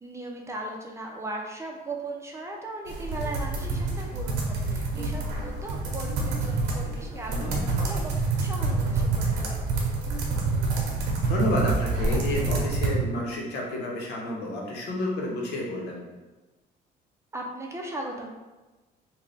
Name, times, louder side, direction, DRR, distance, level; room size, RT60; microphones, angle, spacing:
voice 1, 0.0-9.6 17.3-18.4, right 2 dB, 15° right, 0 dB, 0.5 m, -38 dB
sound 1, 2.9-12.9, right 3 dB, 85° right, 0.8 m, -27 dB
voice 2, 11.3-16.0, left 2 dB, 85° left, -1 dB, 0.9 m, -30 dB
3.1 x 2.2 x 4.0 m, 1.2 s
cardioid pair, 110°, 17 cm